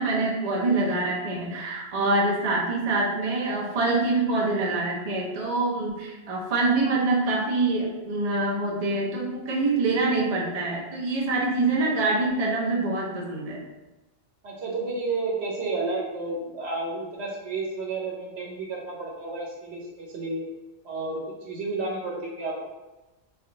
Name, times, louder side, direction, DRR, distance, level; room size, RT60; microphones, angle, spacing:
voice 1, 0.0-13.6, right 2 dB, 40° right, -3 dB, 0.7 m, -25 dB
voice 2, 14.4-20.5 20.8-22.7, right 3 dB, 85° right, -2 dB, 1.1 m, -31 dB
3.3 x 2.4 x 3.8 m, 1.1 s
omnidirectional pair, 1.1 m